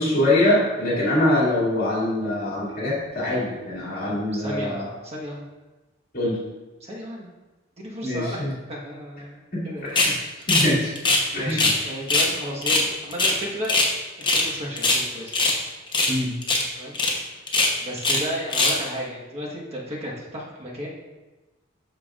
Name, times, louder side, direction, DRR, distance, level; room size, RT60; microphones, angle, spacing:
voice 1, 0.0-4.9 6.1-6.4 8.0-8.5 9.5-10.1 10.5-10.9 11.3-11.7 16.1-16.3, left 1 dB, 50° left, -6 dB, 2.5 m, -23 dB
voice 2, 4.1-5.4 6.8-7.3 7.8-9.9 11.3-13.7 14.2-15.4 16.8-17.0 17.8-20.9, equal, 30° right, -4 dB, 1.3 m, -33 dB
sound 1, 10.0-10.2 10.5-10.7 11.0-11.8 12.1-12.3 12.6-13.9 14.2-14.5 14.8-15.6 15.9-16.2 16.4-16.7 16.9-17.1 17.5-18.2 18.5-18.8, left 2 dB, 25° left, 0.9 m, -21 dB
12.5 x 4.6 x 2.5 m, 1.2 s
head